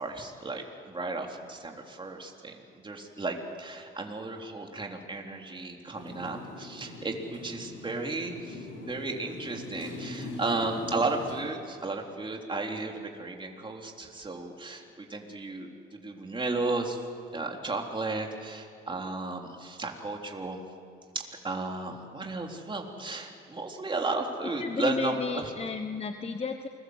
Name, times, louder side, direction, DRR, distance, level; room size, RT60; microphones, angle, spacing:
voice 1, 0.0-17.1 17.3-20.6 21.2-25.5, right 3 dB, 25° right, 1 dB, 3.5 m, -34 dB
Motorcycle, 5.9-11.4, left 2 dB, 70° left, 6.6 m, -41 dB
voice 2, 24.6-26.7, left 5 dB, 30° left, 7 dB, 1.3 m, -33 dB
28.5 x 21.5 x 8.0 m, 2.3 s
cardioid pair, 90°, 20 cm